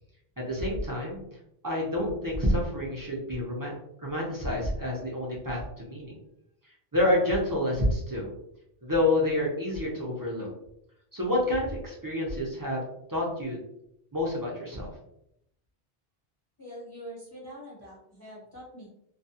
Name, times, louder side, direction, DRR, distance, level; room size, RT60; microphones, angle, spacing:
voice 1, 0.4-1.2 1.6-3.7 4.0-6.2 6.9-8.3 8.8-10.5 11.1-12.8 13.1-13.6 14.1-14.9, left 1 dB, 25° right, -4 dB, 0.5 m, -28 dB
voice 2, 16.6-18.9, equal, 25° left, -7 dB, 0.8 m, -44 dB
2.3 x 2.2 x 2.7 m, 0.78 s
omnidirectional pair, 1.1 m